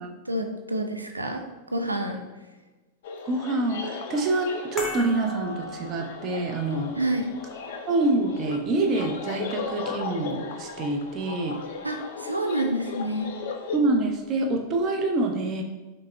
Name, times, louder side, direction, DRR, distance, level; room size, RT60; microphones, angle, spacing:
voice 1, 0.3-1.4 1.7-2.2 7.0-7.3 11.8-13.3, right 1 dB, 85° right, 4 dB, 0.5 m, -28 dB
sound 1, 3.0-13.8, left 5 dB, 55° left, 0.5 m, -37 dB
voice 2, 3.2-7.0 7.9-11.6 13.7-15.6, right 2 dB, 30° right, 3 dB, 0.6 m, -26 dB
sound 2, 4.8-11.2 11.5-11.6, left 2 dB, 10° left, 1.0 m, -42 dB
5.6 x 2.0 x 3.5 m, 1.2 s
figure-of-eight pair, 90°, 0 cm